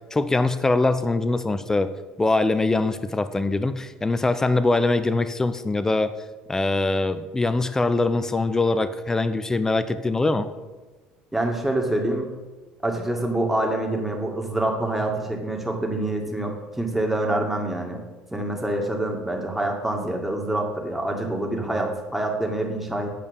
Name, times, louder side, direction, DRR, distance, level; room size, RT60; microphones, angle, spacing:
voice 1, 0.1-1.9 2.2-6.1 6.5-10.5, left 2 dB, 15° left, 12 dB, 0.7 m, -23 dB
voice 2, 11.3-12.3 12.8-18.0 18.3-23.1, right 1 dB, 5° right, 1 dB, 2.0 m, -26 dB
8.6 x 5.1 x 7.1 m, 1.2 s
supercardioid pair, 85°, 3 cm